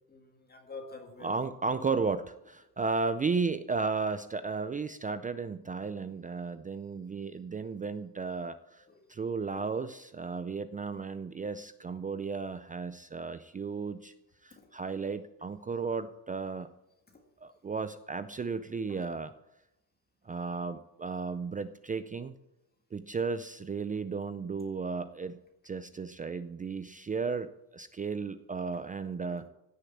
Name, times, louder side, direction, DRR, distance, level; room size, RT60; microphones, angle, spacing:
voice 1, 0.1-1.4 8.9-9.0 9.5-9.6 14.5-14.7 17.1-17.2 18.9-19.0 29.3-29.4, left 3 dB, 25° left, 1.9 m, -47 dB
voice 2, 1.2-8.8 9.1-14.1 14.4-16.7 17.4-19.3 20.3-22.3 22.9-25.4 25.6-29.5, right 4 dB, 20° right, 0.4 m, -34 dB
16.5 x 6.7 x 8.5 m
cardioid pair, 160°, 39 cm